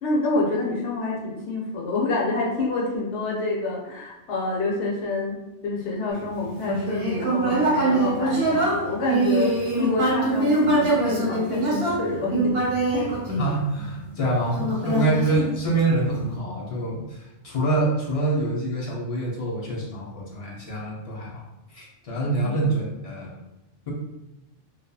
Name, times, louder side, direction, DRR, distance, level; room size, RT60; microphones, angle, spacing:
voice 1, 0.0-5.4 5.6-12.5 12.9-13.1 14.9-15.2 22.4-22.5, left 3 dB, 70° left, -3 dB, 0.9 m, -27 dB
Human voice, 6.6-14.0 14.6-16.0, right 2 dB, 60° right, 0.9 m, -23 dB
voice 2, 13.4-21.4 21.7-23.3 23.9-24.0, right 2 dB, 45° left, -4 dB, 0.4 m, -26 dB
2.7 x 2.3 x 2.2 m, 0.97 s
omnidirectional pair, 1.3 m